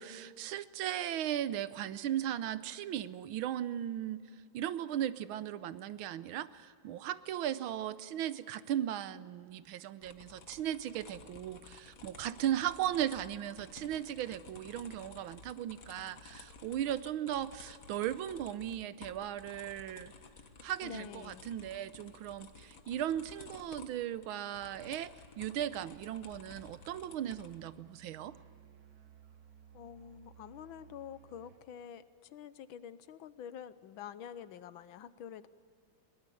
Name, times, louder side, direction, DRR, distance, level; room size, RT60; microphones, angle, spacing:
voice 1, 0.0-4.2 4.5-20.1 20.6-28.4, right 11 dB, 85° right, 15 dB, 1.6 m, -37 dB
sound 1, 10.0-27.6, left 4 dB, 45° left, 1.7 m, -54 dB
voice 2, 20.8-21.5 29.7-35.5, left 9 dB, 75° left, 14 dB, 1.6 m, -47 dB
Musical instrument, 25.3-31.7, right 8 dB, 55° right, 1.2 m, -59 dB
22.5 x 18.5 x 8.5 m, 2.4 s
omnidirectional pair, 2.2 m